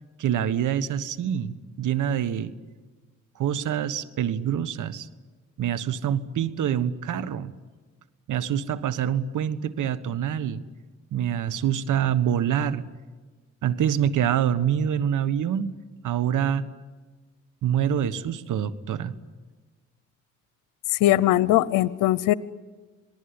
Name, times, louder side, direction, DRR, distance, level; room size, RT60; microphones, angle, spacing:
voice 1, 0.2-2.5 3.4-5.1 5.6-7.5 8.3-10.6 11.1-12.8 13.6-15.7 16.0-16.7 17.6-19.1, right 9 dB, 75° right, 13 dB, 1.5 m, -26 dB
voice 2, 21.0-22.3, left 15 dB, 85° left, 18 dB, 0.8 m, -20 dB
27.0 x 19.5 x 9.9 m, 1.4 s
supercardioid pair, 55°, 31 cm